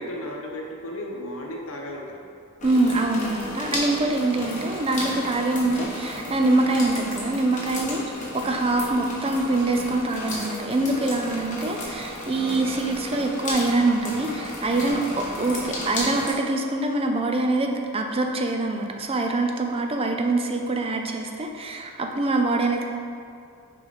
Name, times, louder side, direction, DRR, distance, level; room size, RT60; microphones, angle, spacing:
voice 1, 0.0-2.3 4.1-4.5 8.2-8.3, equal, 65° left, -1 dB, 0.9 m, -35 dB
sound 1, 2.6-16.3, left 1 dB, 35° left, 1.4 m, -33 dB
voice 2, 2.6-8.0 8.3-22.9, right 2 dB, 25° right, 2 dB, 0.5 m, -24 dB
6.6 x 4.6 x 4.0 m, 2.4 s
head